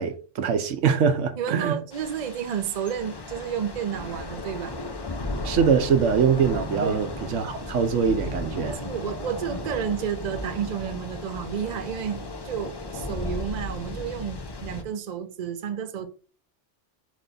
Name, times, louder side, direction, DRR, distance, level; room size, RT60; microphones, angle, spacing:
voice 1, 0.0-1.8 5.4-8.8, right 6 dB, 85° right, 1.0 m, -23 dB
voice 2, 1.4-4.8 6.8-7.0 8.8-16.1, right 8 dB, 45° right, 0.6 m, -31 dB
Thunder / Rain, 1.9-14.8, left 2 dB, 40° left, 0.4 m, -35 dB
4.5 x 3.0 x 3.9 m
omnidirectional pair, 1.2 m